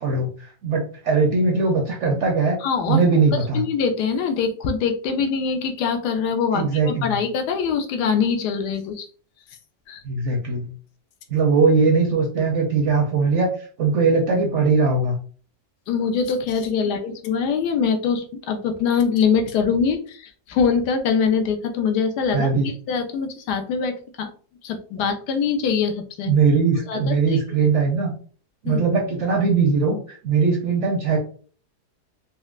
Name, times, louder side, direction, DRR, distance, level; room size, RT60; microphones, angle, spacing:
voice 1, 0.0-2.6 2.9-3.6 6.5-7.1 10.0-10.7 11.3-13.5 13.8-15.2 22.3-22.7 26.3-28.1 28.6-31.2, right 4 dB, 65° right, 1 dB, 0.7 m, -20 dB
voice 2, 2.6-3.0 3.5-9.1 9.9-10.0 15.9-24.3 24.6-26.3 26.9-27.4 28.7-28.8, left 6 dB, 85° left, 5 dB, 1.2 m, -23 dB
4.2 x 2.0 x 2.3 m, 0.43 s
omnidirectional pair, 1.7 m